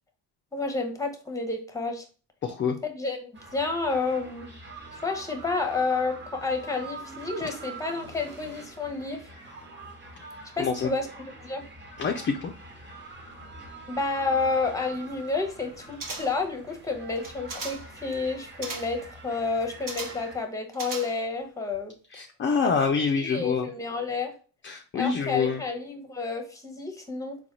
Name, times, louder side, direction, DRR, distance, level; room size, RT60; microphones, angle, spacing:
voice 1, 0.5-2.1 2.8-4.5 5.0-9.3 10.6-11.1 11.4-11.6 13.9-21.9 22.6-22.7 23.2-24.3 24.9-27.4, left 3 dB, 10° left, 5 dB, 0.7 m, -30 dB
voice 2, 2.4-2.8 10.6-10.9 12.0-12.5 22.1-23.7 24.6-25.6, left 5 dB, 30° left, 4 dB, 0.4 m, -26 dB
sound 1, 3.3-20.4, right 3 dB, 25° right, 1.1 m, -45 dB
sound 2, 16.0-16.5 17.2-17.9 18.6-19.0 19.9-20.3 20.7-21.4 21.7-21.8, right 3 dB, 45° right, 1.0 m, -38 dB
3.9 x 2.3 x 2.9 m, 0.36 s
cardioid pair, 85°, 43 cm